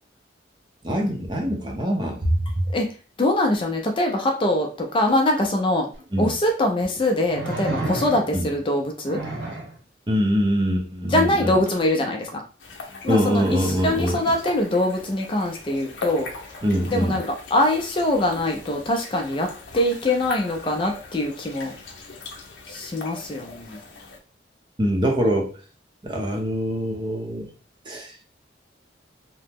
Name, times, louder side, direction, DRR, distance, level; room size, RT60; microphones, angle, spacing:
voice 1, 0.8-2.7 6.1-6.3 8.3-8.5 10.1-11.6 13.1-14.2 16.6-17.2 24.8-25.5 26.0-27.5 27.9-28.3, equal, 25° right, 1 dB, 0.6 m, -23 dB
voice 2, 3.2-5.9 6.2-9.2 11.1-12.4 13.0-16.3 16.9-17.2 17.5-19.5 19.7-21.7 22.7-23.8, left 1 dB, 25° left, 2 dB, 0.4 m, -23 dB
sound 1, 5.9-6.0 7.3-8.5 9.1-9.8 11.7-11.8, right 2 dB, 75° right, 0.7 m, -30 dB
sound 2, 12.6-24.2, left 3 dB, 85° left, 0.6 m, -40 dB
2.8 x 2.0 x 3.4 m, 0.38 s
head